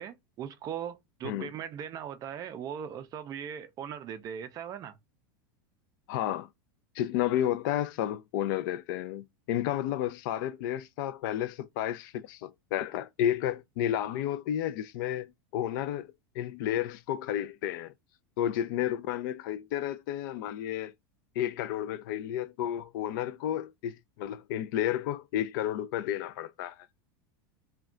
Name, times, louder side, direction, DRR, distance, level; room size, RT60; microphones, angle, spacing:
voice 1, 0.0-5.0, right 8 dB, 30° right, 0.4 m, -39 dB
voice 2, 6.1-6.5 7.0-15.3 15.5-17.9 18.4-20.9 21.4-26.8, left 11 dB, 65° left, 0.4 m, -32 dB
2.3 x 2.2 x 3.7 m
supercardioid pair, 125°, 12 cm